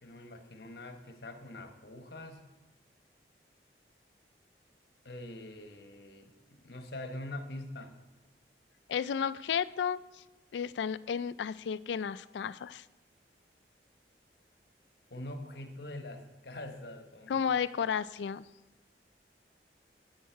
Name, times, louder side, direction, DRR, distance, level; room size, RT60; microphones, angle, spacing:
voice 1, 0.0-2.4 5.0-7.9 15.1-17.5, left 1 dB, 65° left, 6 dB, 1.1 m, -44 dB
voice 2, 8.9-10.0 10.5-12.8 17.3-18.4, left 7 dB, 85° left, 17 dB, 0.3 m, -32 dB
11.0 x 8.0 x 4.6 m, 1.1 s
head